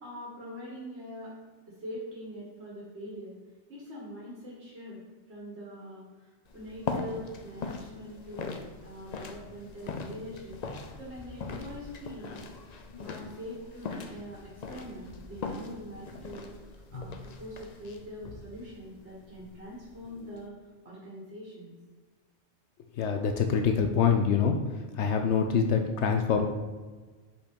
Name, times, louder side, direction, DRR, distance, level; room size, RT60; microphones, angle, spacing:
voice 1, 0.0-1.3 1.7-3.3 3.7-5.0 5.3-12.4 13.0-20.5 20.8-21.7, equal, 60° right, -5 dB, 1.9 m, -43 dB
sound 1, 6.5-20.5, left 4 dB, 50° left, 0.5 m, -41 dB
voice 2, 23.0-24.6 25.0-26.5, left 6 dB, 75° left, 4 dB, 0.9 m, -25 dB
5.2 x 4.4 x 5.2 m, 1.4 s
omnidirectional pair, 1.2 m